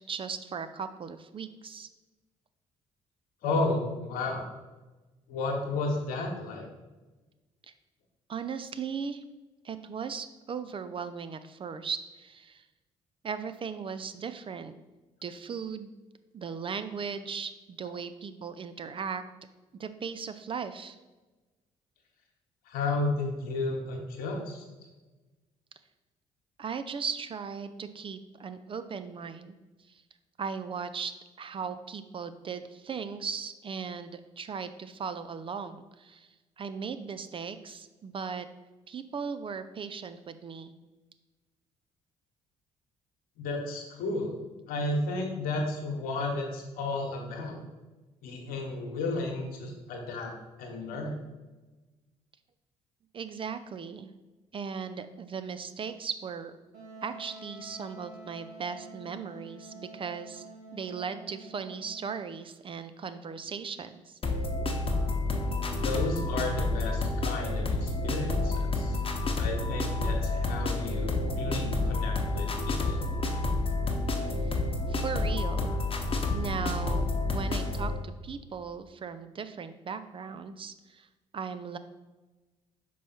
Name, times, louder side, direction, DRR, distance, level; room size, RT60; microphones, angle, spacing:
voice 1, 0.0-1.9 7.7-7.8 8.3-9.2 9.6-12.7 13.2-14.7 15.2-15.9 16.3-19.2 19.8-21.0 26.6-29.5 29.9-30.0 30.4-31.1 31.4-36.3 36.6-38.5 38.9-40.7 53.1-54.1 54.5-56.5 57.0-64.2 74.4-74.6 74.9-75.8 76.3-81.1 81.3-81.8, right 6 dB, 35° right, 10 dB, 0.4 m, -37 dB
voice 2, 3.4-4.5 5.3-6.7 22.7-24.6 43.4-44.3 44.7-47.6 48.2-50.3 50.6-51.2 65.7-69.0 69.4-73.0, left 2 dB, 65° left, 2 dB, 1.2 m, -33 dB
Wind instrument woodwind instrument, 56.7-62.3, right 2 dB, 75° right, 1.6 m, -48 dB
sound 1, 64.2-77.9, left 2 dB, 35° left, 1.0 m, -29 dB
5.4 x 4.6 x 4.2 m, 1.2 s
figure-of-eight pair, 45°, 16 cm